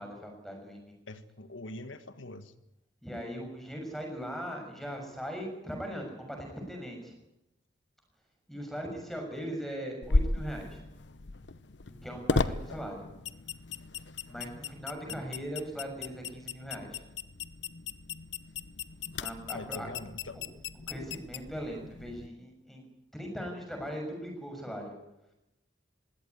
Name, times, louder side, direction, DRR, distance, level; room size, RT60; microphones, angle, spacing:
voice 1, 0.0-0.9 3.0-7.1 8.5-10.8 12.0-13.1 14.2-17.0 19.2-19.9 20.9-22.8 23.1-25.0, equal, ahead, 2 dB, 6.7 m, -39 dB
voice 2, 1.1-2.5 19.5-20.4, left 2 dB, 85° left, 10 dB, 1.5 m, -43 dB
sound 1, 10.0-22.3, left 3 dB, 65° left, 0.9 m, -35 dB
21.0 x 17.0 x 9.5 m, 0.88 s
head